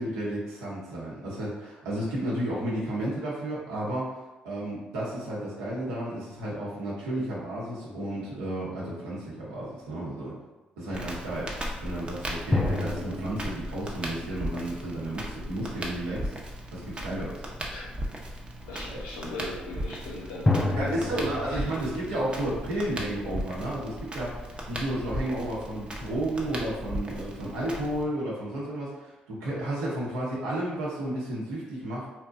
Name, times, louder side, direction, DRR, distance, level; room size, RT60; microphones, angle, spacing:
voice 1, 0.0-4.2 4.4-10.4 10.8-11.5 11.8-16.3 16.7-17.4 18.9-19.0 20.7-32.1, right 1 dB, 85° right, -6 dB, 0.8 m, -32 dB
sound 1, 7.9-9.5 12.5-15.2 20.5-23.4, left 2 dB, 20° left, 0.3 m, -32 dB
Crackle, 10.9-28.0, equal, 25° right, 0.6 m, -37 dB
voice 2, 18.6-21.2 21.5-21.8, left 2 dB, 85° left, -4 dB, 0.6 m, -40 dB
2.7 x 2.1 x 2.4 m, 1.1 s
hypercardioid pair, 50°, 4 cm